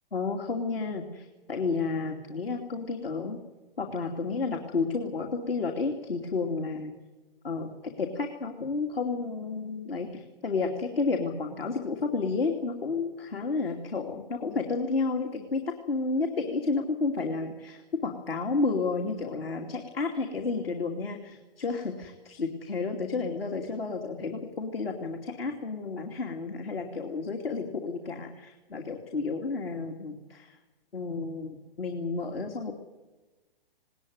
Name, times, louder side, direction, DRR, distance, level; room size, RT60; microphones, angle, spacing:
voice 1, 0.1-3.4 3.8-7.0 7.4-30.6 30.9-32.7, left 4 dB, 75° left, 3 dB, 2.9 m, -31 dB
20.0 x 19.5 x 9.5 m, 1.2 s
hypercardioid pair, 135°, 29 cm